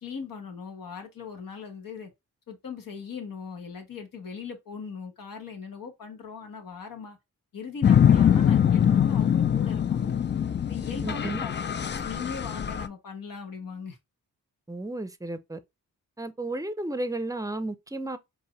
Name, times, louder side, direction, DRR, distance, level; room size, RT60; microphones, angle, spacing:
voice 1, 0.0-2.1 2.5-7.2 7.5-10.2 10.6-11.5 12.0-14.0, left 5 dB, 70° left, 1.4 m, -39 dB
sound 1, 7.8-12.9, left 9 dB, 30° left, 0.4 m, -23 dB
voice 2, 11.0-11.5 14.7-15.6 16.2-18.2, right 2 dB, 10° right, 0.6 m, -33 dB
4.6 x 2.7 x 3.1 m
cardioid pair, 60°, 35 cm